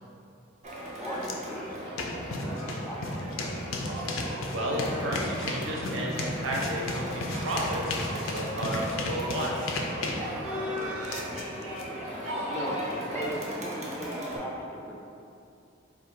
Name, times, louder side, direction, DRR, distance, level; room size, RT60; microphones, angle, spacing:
Crowd, 0.6-14.4, equal, 35° right, 0.7 m, -37 dB
voice 1, 1.0-3.7 10.6-15.0, equal, 10° left, -4 dB, 0.4 m, -39 dB
sound 1, 1.2-1.3 1.7-11.8, left 2 dB, 75° left, 0.5 m, -34 dB
voice 2, 4.5-9.6, equal, 75° right, -3 dB, 0.8 m, -32 dB
Livestock farm animals working animals, 5.7-11.3, right 4 dB, 90° right, 0.3 m, -44 dB
3.7 x 2.4 x 4.5 m, 2.6 s
head